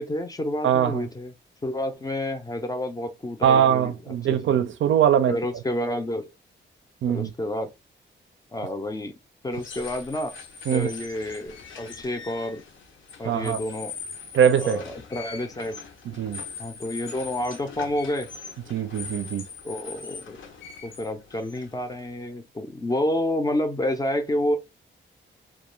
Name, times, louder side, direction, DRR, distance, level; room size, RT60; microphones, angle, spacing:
voice 1, 0.0-1.3 1.6-4.6 5.3-6.3 7.1-7.7 8.5-9.1 9.4-10.4 10.7-12.6 13.2-13.9 14.4-15.7 16.6-18.3 19.6-20.4 20.8-24.6, left 1 dB, 20° left, 0.4 m, -29 dB
voice 2, 0.6-1.0 3.4-5.4 7.0-7.3 10.7-10.9 13.2-13.6 14.3-14.8 16.1-16.4 18.7-19.4, right 9 dB, 75° right, 0.4 m, -21 dB
sound 1, 9.5-22.2, left 5 dB, 75° left, 0.6 m, -41 dB
2.3 x 2.2 x 3.0 m
wide cardioid pair, 130°, 20 cm